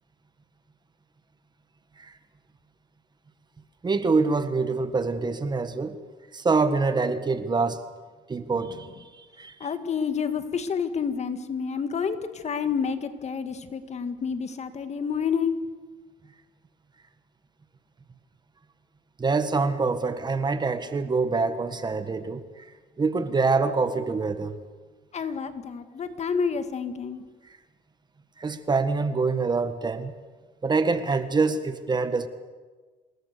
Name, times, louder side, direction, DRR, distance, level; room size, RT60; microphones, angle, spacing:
voice 1, 3.8-6.0 6.3-7.9 8.3-8.9 9.4-9.5 19.2-22.4 23.0-24.5 28.4-30.1 30.6-32.3, right 4 dB, 25° right, 10 dB, 1.6 m, -25 dB
voice 2, 9.6-15.6 25.1-27.2, left 6 dB, 40° left, 9 dB, 1.8 m, -29 dB
27.0 x 21.0 x 6.7 m, 1.4 s
cardioid pair, 110°, 17 cm